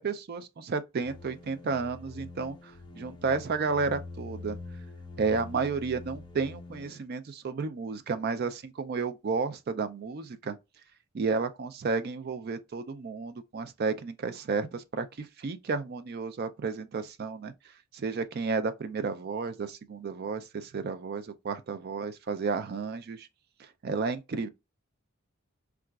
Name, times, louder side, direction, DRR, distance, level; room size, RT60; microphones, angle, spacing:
voice 1, 0.0-4.6 5.2-10.6 11.1-17.5 17.9-23.3 23.6-24.5, right 4 dB, 45° right, 0.4 m, -32 dB
sound 1, 1.0-7.0, left 3 dB, 20° left, 0.5 m, -45 dB
3.8 x 2.4 x 2.3 m
head